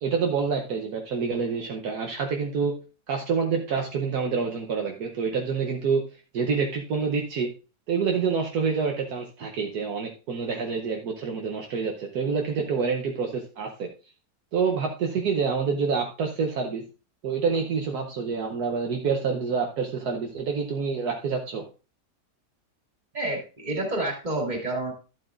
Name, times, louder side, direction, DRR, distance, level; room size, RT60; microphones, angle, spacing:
voice 1, 0.0-2.7 3.1-6.0 6.3-7.5 7.9-13.9 14.5-16.8 17.2-21.7, right 5 dB, 70° right, 2 dB, 1.4 m, -27 dB
voice 2, 23.1-24.9, right 2 dB, 25° right, 1 dB, 2.3 m, -29 dB
12.0 x 7.9 x 2.5 m, 0.33 s
omnidirectional pair, 1.8 m